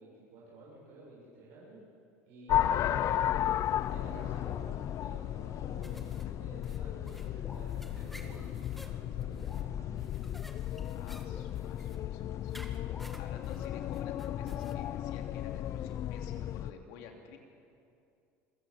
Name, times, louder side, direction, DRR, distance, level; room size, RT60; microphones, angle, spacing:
voice 1, 0.0-1.8 2.3-2.9 3.8-10.0, right 2 dB, 75° right, -6 dB, 7.4 m, -52 dB
sound 1, 2.4-2.9 3.8-4.1 4.4-4.7 5.1-5.2 5.6-5.8 6.5-6.7 7.4-7.7 8.2-8.5 9.4-9.9 11.2-13.8 14.7-14.9, left 3 dB, 20° left, 3.9 m, -53 dB
voice 2, 2.5-3.3 3.8-4.3 10.9-12.6 13.2-17.4, left 6 dB, 75° left, 3 dB, 3.2 m, -51 dB
sound 2, 2.5-16.7, left 11 dB, 50° left, 0.6 m, -34 dB
sound 3, 5.8-14.7, equal, 5° left, 1.9 m, -55 dB
26.5 x 17.0 x 7.3 m, 2.5 s
supercardioid pair, 95°, 7 cm